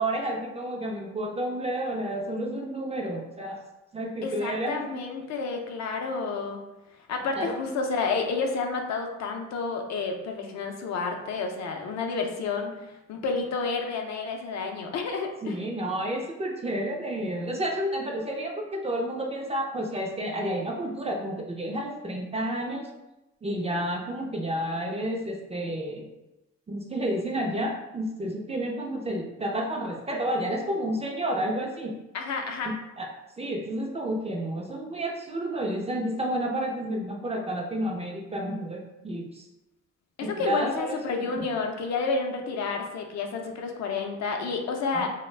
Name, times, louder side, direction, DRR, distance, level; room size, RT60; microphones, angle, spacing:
voice 1, 0.0-3.6 3.9-5.0 7.4-7.6 15.4-22.9 23.4-26.1 26.7-31.9 32.6-33.1 33.4-39.5 40.2-41.0 44.9-45.1, right 1 dB, 20° right, 1 dB, 0.4 m, -30 dB
voice 2, 4.2-6.6 7.1-12.7 13.1-15.6 32.1-32.7 40.2-45.1, left 4 dB, 65° left, 3 dB, 0.5 m, -30 dB
2.3 x 2.1 x 3.2 m, 0.97 s
cardioid pair, 90°, 30 cm